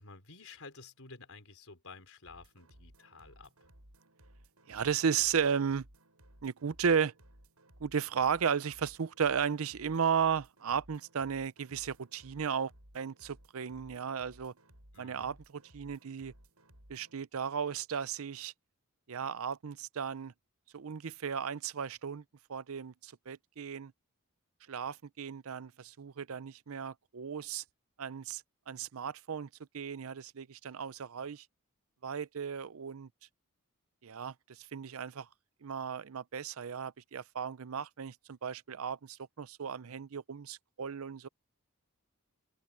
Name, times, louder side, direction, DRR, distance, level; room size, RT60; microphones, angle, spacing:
voice 1, 0.0-3.5 14.9-15.4, left 4 dB, 65° left, 5.4 m, -52 dB
sound 1, 2.2-17.2, right 1 dB, 85° right, 8.0 m, -60 dB
voice 2, 4.7-5.9 6.4-7.1 7.8-14.5 15.0-16.3 16.9-18.5 19.1-20.3 20.7-22.2 22.5-23.9 24.7-27.6 28.0-29.5 29.7-31.5 32.0-33.1 34.0-35.3 35.6-41.3, right 7 dB, 65° right, 0.6 m, -35 dB
open air
head